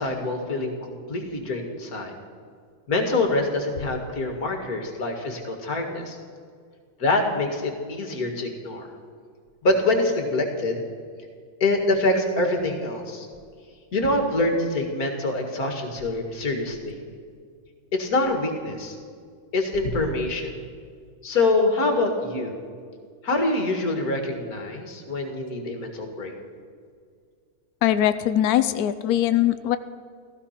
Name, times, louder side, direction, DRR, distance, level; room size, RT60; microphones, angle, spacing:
voice 1, 0.0-2.1 2.9-6.2 7.0-8.9 9.6-10.8 11.6-13.3 13.9-17.0 17.9-19.0 19.5-20.5 21.2-22.6 23.2-26.3, left 2 dB, 45° left, 4 dB, 2.3 m, -25 dB
voice 2, 27.8-29.8, left 12 dB, 80° left, 12 dB, 0.8 m, -21 dB
15.5 x 15.0 x 5.9 m, 2.1 s
omnidirectional pair, 2.3 m